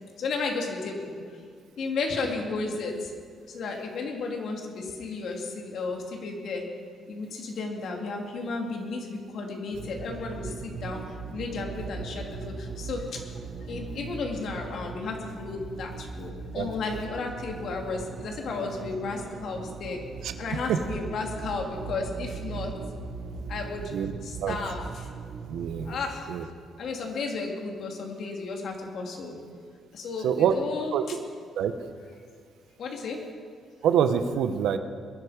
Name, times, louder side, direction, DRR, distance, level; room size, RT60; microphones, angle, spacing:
voice 1, 0.2-1.1 1.8-3.1 3.5-6.6 7.1-11.0 11.3-13.0 13.7-20.0 20.4-22.7 23.5-23.8 24.2-25.1 25.9-26.2 26.8-29.4 29.9-31.2 32.8-33.2, left 3 dB, 65° left, 1 dB, 2.8 m, -33 dB
sound 1, 9.7-25.9, right 5 dB, 65° right, 1.3 m, -39 dB
voice 2, 25.5-26.0 26.3-26.4 30.2-30.5 30.9-31.0 31.6-31.7 33.8-34.8, right 8 dB, 80° right, 9 dB, 1.0 m, -25 dB
22.0 x 11.0 x 5.1 m, 2.1 s
cardioid pair, 90°, 0 cm